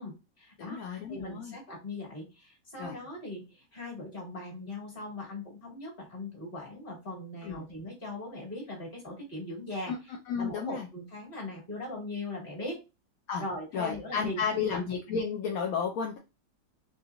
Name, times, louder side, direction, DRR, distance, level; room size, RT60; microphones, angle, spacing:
voice 1, 0.0-9.9 10.4-12.8 13.4-14.8, left 2 dB, 30° left, -2 dB, 1.7 m, -40 dB
voice 2, 0.6-1.6 2.8-3.0 7.4-7.6 9.9-10.0 10.3-10.9 13.3-13.4 13.7-16.2, left 6 dB, 70° left, 1 dB, 0.8 m, -32 dB
3.8 x 2.9 x 2.3 m, 0.27 s
omnidirectional pair, 1.9 m